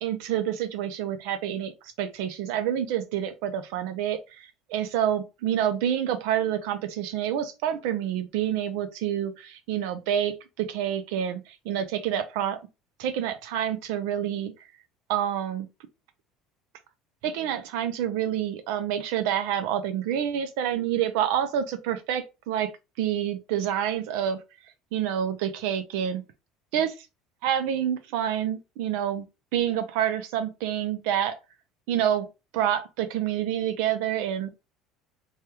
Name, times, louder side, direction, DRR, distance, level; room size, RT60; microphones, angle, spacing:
voice 1, 0.0-12.6 13.0-14.5 15.1-15.7 17.2-22.7 23.0-24.4 24.9-26.2 26.7-27.1 27.4-29.2 29.5-31.4 31.9-32.3 32.5-34.5, right 10 dB, 80° right, 0.4 m, -28 dB
3.3 x 2.3 x 2.9 m
supercardioid pair, 120°, 0 cm